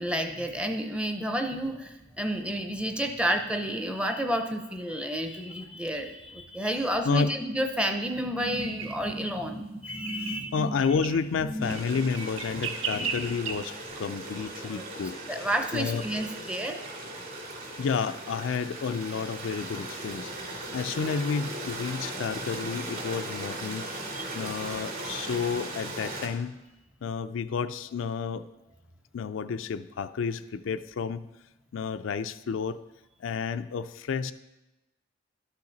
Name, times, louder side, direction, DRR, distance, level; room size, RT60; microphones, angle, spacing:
voice 1, 0.0-10.7 11.4-11.8 12.9-13.4 14.7-14.8 15.3-16.8 24.1-24.3 25.1-25.3, right 1 dB, 5° right, 6 dB, 0.6 m, -31 dB
sound 1, 8.6-8.9 9.9-10.4 10.9-11.2 11.7-13.5, right 7 dB, 90° right, 0.7 m, -35 dB
voice 2, 10.5-15.2 15.7-16.0 17.8-23.9 24.3-26.6 27.0-28.4 29.1-31.3 31.7-32.8 33.2-34.3, left 5 dB, 85° left, 11 dB, 0.4 m, -30 dB
Stream, 11.6-26.3, right 1 dB, 50° right, 2.4 m, -38 dB
12.0 x 5.8 x 3.9 m, 1.0 s
head